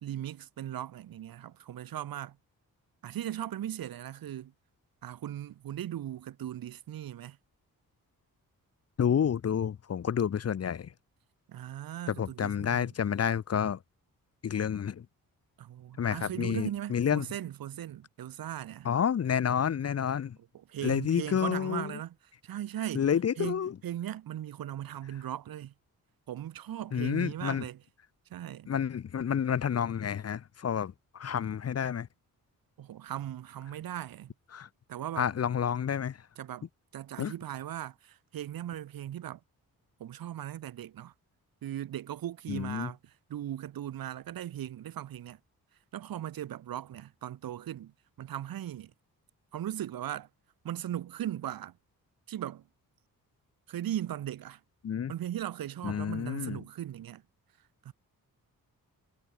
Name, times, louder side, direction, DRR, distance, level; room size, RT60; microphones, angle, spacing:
voice 1, 0.0-2.4 3.0-4.5 5.0-7.4 11.5-12.9 15.6-18.9 20.7-22.1 22.4-23.1 23.4-25.7 26.3-27.8 28.3-28.7 32.8-34.3 34.9-35.3 36.4-39.4 40.0-41.1 41.6-45.4 45.9-47.9 48.2-48.9 49.5-50.3 50.6-51.8 52.3-52.7 53.7-54.6 55.1-57.2 57.8-57.9, right 11 dB, 80° right, 1.4 m, -38 dB
voice 2, 9.0-10.9 12.1-13.8 14.4-15.1 16.0-17.3 18.8-20.4 20.8-21.9 22.9-23.7 26.9-27.6 28.7-32.1 34.5-34.7 35.2-36.2 37.2-37.3 42.5-42.9 54.8-55.1 55.8-56.6, left 8 dB, 45° left, 0.8 m, -29 dB
cardioid pair, 80°, 35 cm